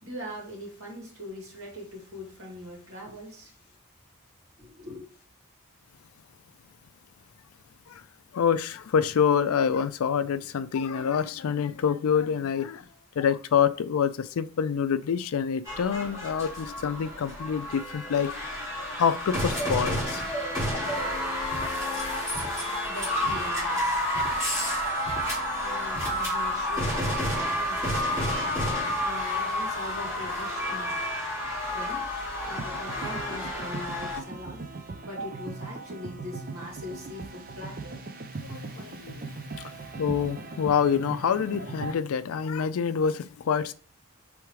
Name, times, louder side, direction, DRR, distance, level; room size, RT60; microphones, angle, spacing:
voice 1, 0.0-3.5 4.6-5.0 22.6-24.0 25.6-28.3 29.0-31.1 31.7-32.1 32.4-34.6 35.0-38.0, left 1 dB, 75° right, 2.1 m, -41 dB
voice 2, 8.3-12.8 13.2-20.2 38.4-39.3 39.5-43.7, left 7 dB, 85° left, 0.4 m, -27 dB
sound 1, 15.7-34.2, left 1 dB, 15° right, 2.2 m, -30 dB
sound 2, 32.5-41.9, right 3 dB, 40° right, 0.4 m, -39 dB
4.8 x 3.4 x 3.2 m
head